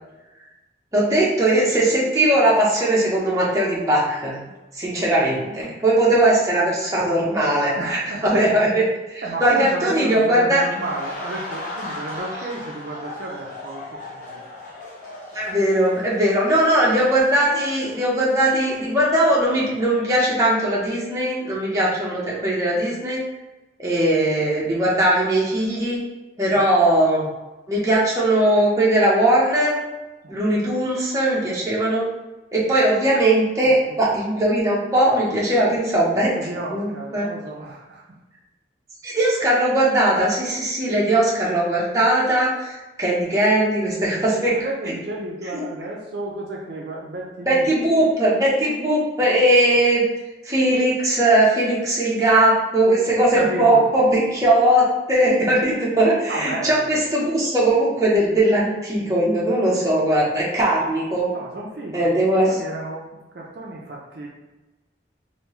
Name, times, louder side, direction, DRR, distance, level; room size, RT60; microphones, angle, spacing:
voice 1, 0.9-4.4 4.8-8.8 9.1-10.6 15.3-23.2 23.8-26.0 26.4-27.3 27.7-29.8 30.3-32.1 32.5-36.3 36.6-37.3 39.0-44.5 45.5-45.6 47.5-50.1 50.4-61.3 61.9-62.5, right 1 dB, 20° right, -6 dB, 0.8 m, -19 dB
voice 2, 5.3-5.8 7.7-8.4 9.2-14.4 15.2-15.3 26.5-26.6 30.2-30.7 33.6-34.1 36.3-38.0 44.5-47.8 53.2-53.9 56.3-57.0 61.3-62.2 62.5-63.0 63.3-64.3, right 2 dB, 60° right, -2 dB, 0.5 m, -32 dB
sound 1, 10.5-19.4 19.7-19.9, left 2 dB, 45° left, 0.8 m, -37 dB
3.3 x 2.7 x 3.1 m, 1.1 s
head